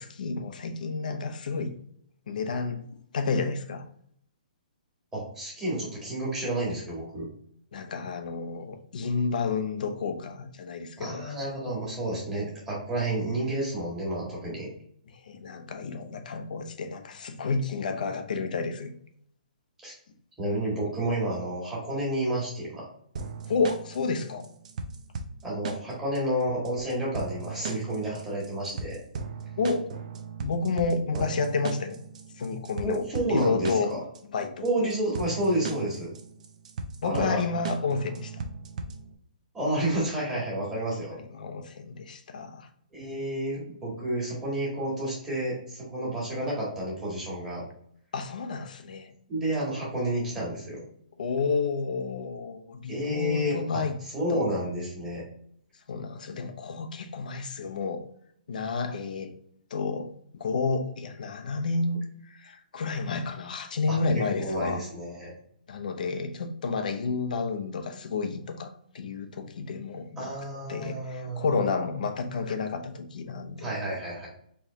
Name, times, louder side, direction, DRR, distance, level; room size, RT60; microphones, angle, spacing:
voice 1, 0.0-1.7 2.3-2.8 3.1-3.8 7.7-11.2 15.1-18.9 23.5-24.5 29.6-29.9 30.4-32.0 32.4-34.0 34.3-34.6 37.0-38.4 41.3-42.7 48.1-49.1 51.2-53.9 54.3-54.4 55.9-58.0 58.5-59.3 59.7-64.8 65.7-70.3 70.7-73.7, left 4 dB, 65° left, 7 dB, 0.7 m, -30 dB
voice 2, 5.1-7.3 11.0-14.7 19.8-19.9 20.4-22.9 25.4-29.0 31.1-31.2 32.8-34.0 34.6-36.1 37.0-37.4 39.5-41.2 42.9-47.6 49.3-50.8 52.9-53.8 54.1-55.2 63.9-64.0 64.4-65.3 70.2-71.5 73.6-74.3, right 1 dB, 10° right, -6 dB, 1.7 m, -30 dB
sound 1, 23.2-39.1, right 5 dB, 50° right, 0.6 m, -38 dB
4.3 x 3.2 x 2.8 m, 0.66 s
hypercardioid pair, 160°, 5 cm